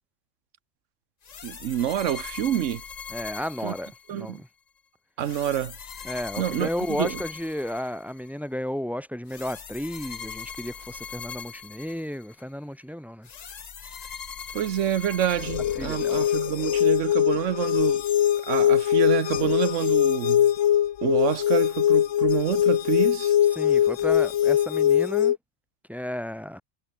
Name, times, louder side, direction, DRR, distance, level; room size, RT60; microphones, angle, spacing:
sound 1, 1.2-4.4 5.2-8.3 9.3-12.4 13.2-16.3, left 7 dB, 40° left, 0.7 m, -41 dB
voice 1, 1.4-2.8 3.6-3.7 4.1-4.4 5.2-5.7 6.4-7.2 14.5-18.0 18.5-20.5 21.0-23.3, right 10 dB, 65° right, 1.1 m, -27 dB
voice 2, 3.1-4.5 6.0-13.3 15.8-16.3 23.5-25.3 25.9-26.6, equal, ahead, 1.0 m, -33 dB
sound 2, 15.4-25.4, left 11 dB, 70° left, 1.1 m, -22 dB
omnidirectional pair, 1.4 m